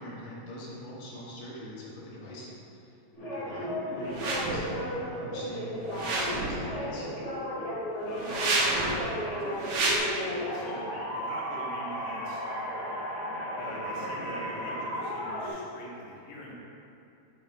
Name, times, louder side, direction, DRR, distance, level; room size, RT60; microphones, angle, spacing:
voice 1, 0.0-2.5 2.8-7.1, equal, 85° left, -7 dB, 3.8 m, -43 dB
sound 1, 3.1-15.5, equal, 40° left, 1.4 m, -34 dB
sound 2, 4.1-4.6 5.8-6.6 8.1-9.0 9.6-10.0, right 2 dB, 85° right, 1.4 m, -29 dB
voice 2, 8.1-12.4 13.6-16.5, equal, 55° left, -5 dB, 2.1 m, -43 dB
9.6 x 8.9 x 2.4 m, 2.6 s
omnidirectional pair, 4.5 m